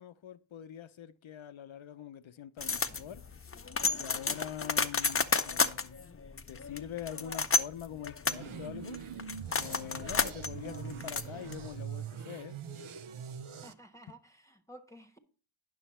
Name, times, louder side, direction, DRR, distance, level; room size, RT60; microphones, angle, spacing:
voice 1, 0.0-3.2 3.8-6.1 6.5-9.0 9.5-12.6, left 10 dB, 75° left, 0.6 m, -44 dB
sound 1, 2.6-11.8, left 4 dB, 30° left, 0.6 m, -32 dB
sound 2, 8.3-13.7, right 8 dB, 90° right, 0.6 m, -43 dB
voice 2, 13.6-15.2, right 1 dB, 5° left, 1.1 m, -53 dB
9.2 x 6.2 x 4.2 m
cardioid pair, 45°, 48 cm